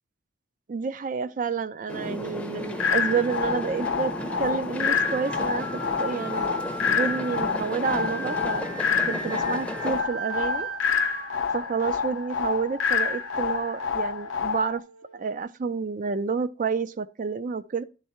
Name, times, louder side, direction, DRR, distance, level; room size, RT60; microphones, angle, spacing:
voice 1, 0.7-4.1 4.4-5.7 6.0-6.5 6.8-8.7 9.1-10.7 11.5-14.8 15.1-17.8, right 5 dB, 40° right, 0.4 m, -29 dB
sound 1, 1.9-10.0, left 1 dB, 5° left, 0.6 m, -34 dB
sound 2, 2.6-15.4, right 2 dB, 65° right, 1.0 m, -39 dB
sound 3, 2.8-14.8, left 6 dB, 85° left, 0.5 m, -28 dB
10.5 x 3.6 x 4.3 m
head